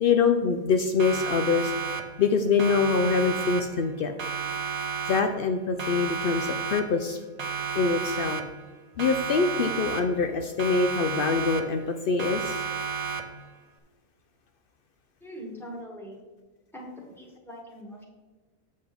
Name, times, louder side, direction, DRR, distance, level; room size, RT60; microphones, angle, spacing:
voice 1, 0.0-1.7 2.2-4.1 5.1-7.2 7.7-8.4 9.0-12.6, left 5 dB, 80° left, 6 dB, 0.5 m, -24 dB
Siren, 1.0-2.3 2.6-3.9 4.2-5.5 5.8-7.1 7.4-8.7 9.0-10.3 10.6-11.9 12.2-13.5, right 6 dB, 90° right, 0.3 m, -32 dB
voice 2, 15.2-16.2 16.7-18.0, equal, ahead, -2 dB, 1.8 m, -42 dB
7.9 x 7.7 x 3.5 m, 1.3 s
omnidirectional pair, 1.6 m